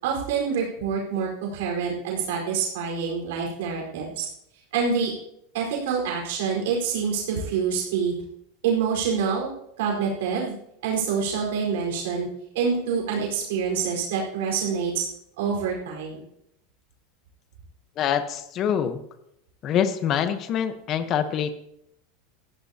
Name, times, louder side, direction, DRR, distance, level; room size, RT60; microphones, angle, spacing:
voice 1, 0.0-4.3 4.7-5.1 5.5-8.1 8.6-9.5 9.8-10.5 10.8-12.3 12.5-15.0 15.4-16.2, right 6 dB, 80° right, -1 dB, 4.5 m, -26 dB
voice 2, 18.0-19.0 19.6-21.5, left 9 dB, 30° left, 9 dB, 1.1 m, -25 dB
18.0 x 14.5 x 2.9 m, 0.76 s
supercardioid pair, 165°, 0 cm